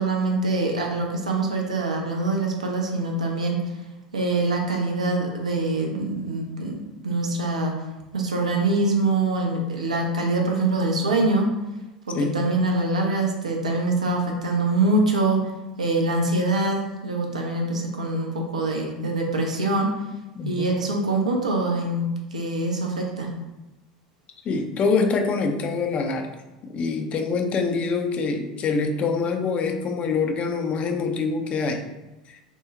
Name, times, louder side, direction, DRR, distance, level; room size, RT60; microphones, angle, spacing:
voice 1, 0.0-3.7 4.1-7.7 8.1-11.5 12.1-15.5 15.8-19.9 20.4-23.3, right 2 dB, 75° right, 1 dB, 0.5 m, -24 dB
voice 2, 20.4-20.8 24.5-26.3 26.6-31.8, left 4 dB, 35° left, 5 dB, 0.3 m, -25 dB
3.7 x 2.0 x 2.4 m, 1.0 s
figure-of-eight pair, 75°, 4 cm